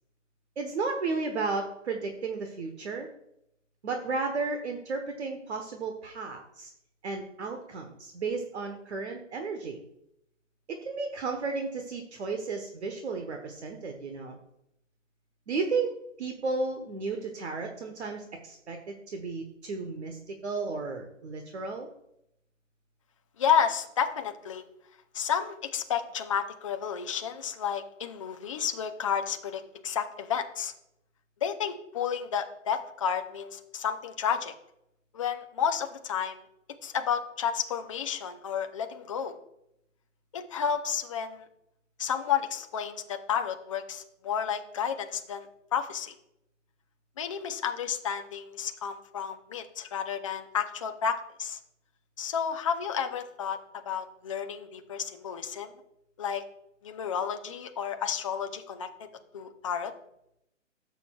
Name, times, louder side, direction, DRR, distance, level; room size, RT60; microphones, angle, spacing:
voice 1, 0.6-3.1 3.8-6.7 7.0-9.8 10.7-14.4 15.5-21.9, right 4 dB, 60° right, 4 dB, 1.2 m, -33 dB
voice 2, 23.4-24.6 25.1-30.7 31.4-34.5 35.1-36.4 36.8-39.4 40.3-41.5 42.0-45.5 45.7-46.1 47.2-51.6 52.2-53.6 53.9-55.7 56.2-56.4 56.8-59.1 59.3-59.9, left 7 dB, 25° left, 6 dB, 0.5 m, -31 dB
13.5 x 7.0 x 2.3 m, 0.79 s
hypercardioid pair, 145°, 39 cm